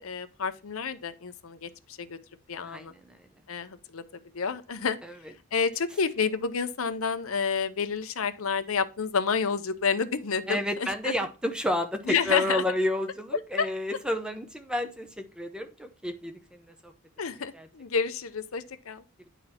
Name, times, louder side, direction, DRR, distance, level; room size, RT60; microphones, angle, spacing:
voice 1, 0.0-2.2 2.5-2.9 3.5-4.0 4.3-5.0 5.5-11.1 12.1-12.6 13.6-13.7 17.2-19.0, left 5 dB, 75° left, 0.7 m, -29 dB
voice 2, 2.6-3.3 5.0-5.1 10.5-16.9 17.5-17.7, left 1 dB, 5° right, 0.7 m, -31 dB
10.0 x 4.1 x 4.3 m
head